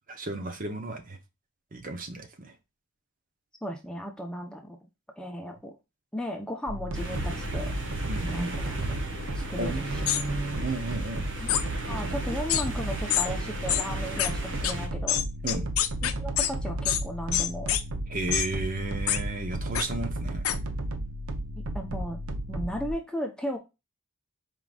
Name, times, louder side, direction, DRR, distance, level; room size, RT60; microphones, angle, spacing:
voice 1, 0.1-1.2 1.7-2.5 8.1-8.5 9.6-11.2 15.4-15.7 18.1-20.4, right 2 dB, 40° right, 0.8 m, -33 dB
voice 2, 3.6-4.8 5.2-5.8 6.1-7.7 8.2-9.0 9.3-9.8 11.4-11.5 11.9-15.2 16.0-17.7 21.7-22.2 22.5-23.6, equal, 5° left, 0.7 m, -35 dB
sound 1, 6.7-22.9, right 1 dB, 90° right, 0.8 m, -34 dB
sound 2, 6.9-14.9, right 2 dB, 60° right, 1.2 m, -37 dB
sound 3, 10.1-10.2 11.5-11.6 12.5-12.6 13.1-13.3 13.7-13.8 14.2-14.3 14.6-14.7 15.1-16.5 16.9-17.0 17.3-17.8 18.3-18.5 19.1-19.2 19.8-19.9 20.4-20.6, left 11 dB, 85° left, 0.6 m, -25 dB
4.8 x 3.8 x 2.4 m
head